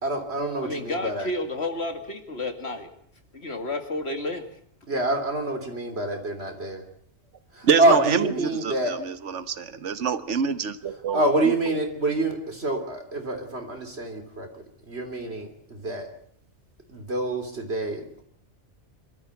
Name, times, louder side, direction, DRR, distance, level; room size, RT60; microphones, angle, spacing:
voice 1, 0.0-1.3 4.9-6.8 7.5-8.9 11.1-16.1 16.9-18.2, right 2 dB, 60° right, 5 dB, 3.6 m, -26 dB
voice 2, 0.6-2.9 3.3-4.5, left 2 dB, 65° left, 6 dB, 2.5 m, -31 dB
voice 3, 7.6-11.2, right 6 dB, 80° right, 12 dB, 1.4 m, -26 dB
26.0 x 13.5 x 8.3 m, 0.65 s
omnidirectional pair, 1.2 m